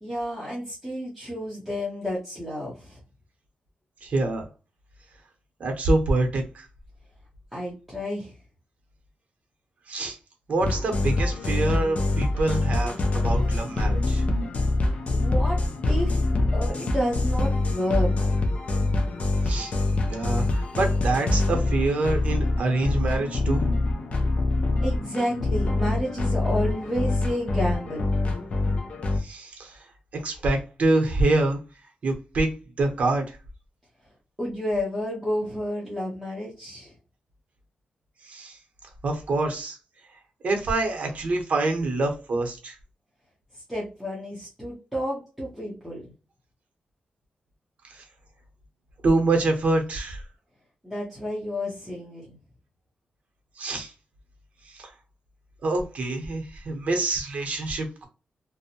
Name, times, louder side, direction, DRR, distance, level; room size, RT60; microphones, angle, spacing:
voice 1, 0.0-3.0 7.5-8.3 15.1-15.6 15.9-16.2 16.5-18.4 24.8-28.1 34.4-36.9 43.5-46.1 50.8-52.4, equal, ahead, -7 dB, 0.7 m, -30 dB
voice 2, 4.0-4.4 5.6-6.7 9.9-10.2 10.5-14.2 19.4-19.7 20.0-23.7 29.2-29.8 30.1-31.6 32.0-32.5 32.8-33.4 38.2-38.6 39.0-39.8 40.4-42.7 47.8-48.0 49.0-50.2 53.6-53.9 54.7-54.9 55.6-58.1, right 2 dB, 55° right, 4 dB, 0.8 m, -26 dB
sound 1, 10.6-29.2, left 2 dB, 45° left, 0.5 m, -25 dB
2.6 x 2.1 x 2.7 m, 0.32 s
wide cardioid pair, 160°, 3 cm